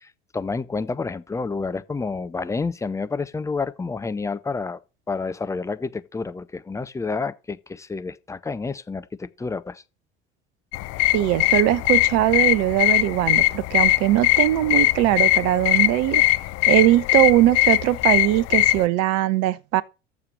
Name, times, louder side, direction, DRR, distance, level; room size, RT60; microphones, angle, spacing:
voice 1, 0.0-4.8 5.1-9.8, left 4 dB, 10° left, 0.6 m, -29 dB
sound 1, 10.7-18.9, left 18 dB, 45° left, 0.7 m, -21 dB
voice 2, 11.1-16.2 16.7-19.8, right 15 dB, 50° right, 0.9 m, -20 dB
8.3 x 6.9 x 6.3 m
figure-of-eight pair, 70°, 34 cm